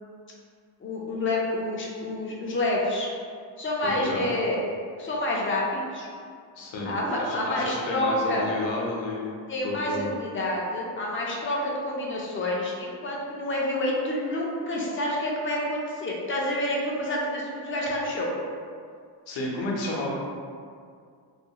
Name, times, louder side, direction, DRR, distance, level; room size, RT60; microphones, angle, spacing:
voice 1, 0.8-3.1 3.6-4.6 5.0-6.1 6.9-8.4 9.5-18.3, left 1 dB, 30° left, -3 dB, 0.3 m, -28 dB
voice 2, 3.8-4.2 6.6-10.1 19.3-20.1, left 2 dB, 75° left, -3 dB, 0.7 m, -32 dB
2.4 x 2.2 x 2.7 m, 2.2 s
wide cardioid pair, 155°, 46 cm